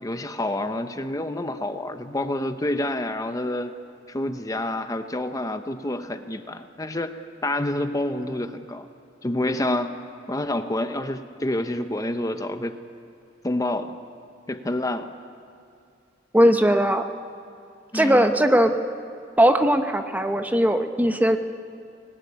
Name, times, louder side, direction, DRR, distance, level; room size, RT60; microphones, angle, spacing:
voice 1, 0.0-3.7 4.1-8.9 9.2-10.0 10.3-12.8 13.4-14.0 14.5-15.1 17.9-18.3, left 1 dB, 20° left, 8 dB, 0.8 m, -28 dB
voice 2, 16.3-17.0 17.9-18.7 19.4-21.4, equal, 10° right, 7 dB, 0.9 m, -19 dB
24.0 x 18.5 x 9.7 m, 2.5 s
head